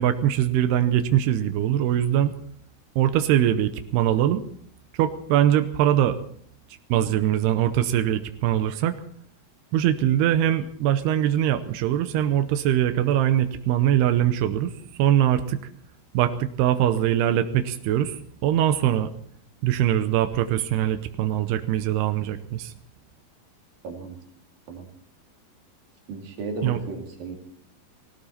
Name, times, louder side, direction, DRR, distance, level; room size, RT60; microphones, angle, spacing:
voice 1, 0.0-2.3 3.0-4.4 5.0-6.2 6.9-9.0 9.7-14.7 15.0-15.6 16.1-19.1 19.6-22.7 26.6-26.8, right 11 dB, 90° right, 9 dB, 2.9 m, -22 dB
voice 2, 23.8-24.2 24.7-24.9 26.1-27.4, right 3 dB, 65° right, 1 dB, 4.3 m, -34 dB
20.0 x 17.0 x 4.2 m, 0.64 s
omnidirectional pair, 4.5 m